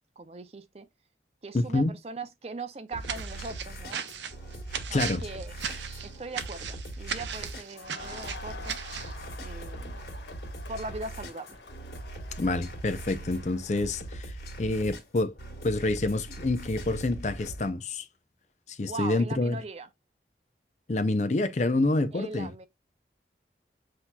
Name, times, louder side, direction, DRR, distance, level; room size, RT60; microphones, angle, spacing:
voice 1, 0.2-0.9 1.4-4.1 4.9-5.5 6.0-8.8 9.4-10.0 10.7-11.6 18.9-19.9 22.1-22.7, right 3 dB, 35° right, 0.5 m, -40 dB
voice 2, 1.5-1.9 4.9-5.2 12.4-14.3 14.6-15.3 15.6-18.1 18.7-19.6 20.9-22.5, left 2 dB, 40° left, 0.5 m, -27 dB
sound 1, 2.9-17.7, right 1 dB, 60° left, 1.7 m, -41 dB
sound 2, 3.0-9.2, right 7 dB, 85° right, 0.6 m, -37 dB
Crowd, 7.7-14.3, left 3 dB, 90° left, 1.3 m, -47 dB
7.7 x 2.8 x 2.2 m
head